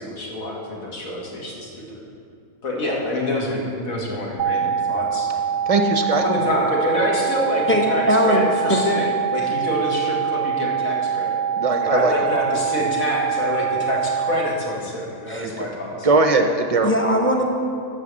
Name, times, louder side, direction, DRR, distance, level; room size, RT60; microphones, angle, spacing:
voice 1, 0.0-2.0 2.6-5.3 6.2-11.4 11.8-16.1, left 1 dB, 70° left, -2 dB, 2.2 m, -26 dB
sound 1, 4.4-14.4, right 8 dB, 60° right, 0.8 m, -24 dB
voice 2, 5.7-6.2 11.6-12.1 15.4-15.7 16.0-16.9, right 3 dB, 45° right, 5 dB, 0.5 m, -19 dB
voice 3, 7.7-8.4 8.7-8.8 15.3-15.5 16.8-17.4, equal, 10° left, 1 dB, 0.8 m, -20 dB
9.7 x 6.6 x 7.6 m, 2.4 s
omnidirectional pair, 1.5 m